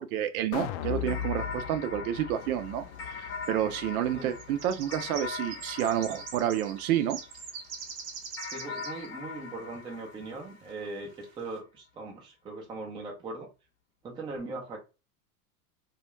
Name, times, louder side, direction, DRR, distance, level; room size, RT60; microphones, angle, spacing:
voice 1, 0.0-2.9 3.2-7.2, right 11 dB, 80° right, 0.6 m, -29 dB
sound 1, 0.5-6.7 7.1-7.2, left 9 dB, 65° left, 0.5 m, -40 dB
sound 2, 1.1-7.7 8.4-11.1, left 5 dB, 30° left, 0.7 m, -42 dB
sound 3, 2.7-2.8 3.6-3.8 4.1-9.1 9.4-9.5 9.9-10.0 10.8-10.9 11.3-11.5, right 6 dB, 40° right, 0.8 m, -43 dB
voice 2, 8.5-13.5 14.0-14.8, right 3 dB, 10° right, 0.4 m, -40 dB
2.4 x 2.1 x 3.0 m
supercardioid pair, 120°, 44 cm